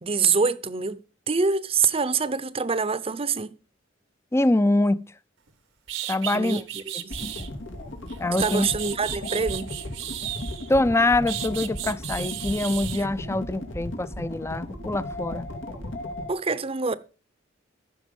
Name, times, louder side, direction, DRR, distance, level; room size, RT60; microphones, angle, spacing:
voice 1, 0.0-3.6 6.3-7.3 8.4-9.7 13.0-13.1 16.3-17.0, right 5 dB, 30° right, 0.7 m, -26 dB
voice 2, 4.3-5.1 6.1-6.6 6.9-7.0 8.2-8.7 10.7-15.4, left 2 dB, 15° left, 0.5 m, -24 dB
sound 1, 5.5-5.6 5.9-7.5 8.1-10.7 11.3-13.0, right 12 dB, 90° right, 1.2 m, -34 dB
sound 2, 7.1-16.3, left 1 dB, 90° left, 2.4 m, -35 dB
14.5 x 6.1 x 5.3 m
head